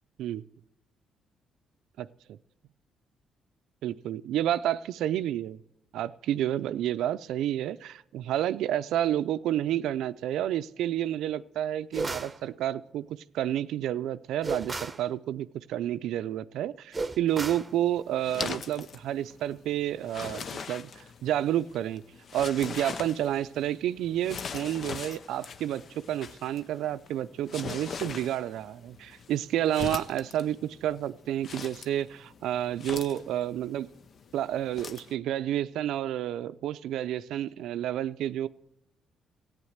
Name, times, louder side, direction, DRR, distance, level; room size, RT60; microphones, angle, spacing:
voice 1, 2.0-2.4 3.8-5.6 5.9-22.0 22.3-33.9 34.3-38.5, right 11 dB, 85° right, 14 dB, 0.5 m, -30 dB
sound 1, 11.9-12.4 14.4-15.0 16.9-17.7, right 3 dB, 20° right, 0.9 m, -33 dB
sound 2, 17.4-35.1, left 6 dB, 50° left, 0.6 m, -42 dB
14.0 x 9.0 x 8.0 m, 0.83 s
cardioid pair, 90°, 0 cm